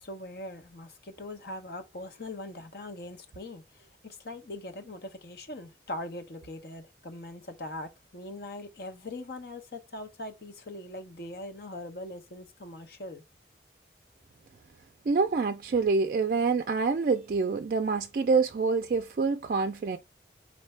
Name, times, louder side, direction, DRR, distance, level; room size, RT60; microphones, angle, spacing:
voice 1, 0.0-3.6 4.0-13.2, left 1 dB, 60° left, 0.8 m, -41 dB
voice 2, 15.1-20.0, right 4 dB, 50° right, 0.3 m, -26 dB
4.4 x 2.6 x 3.2 m
head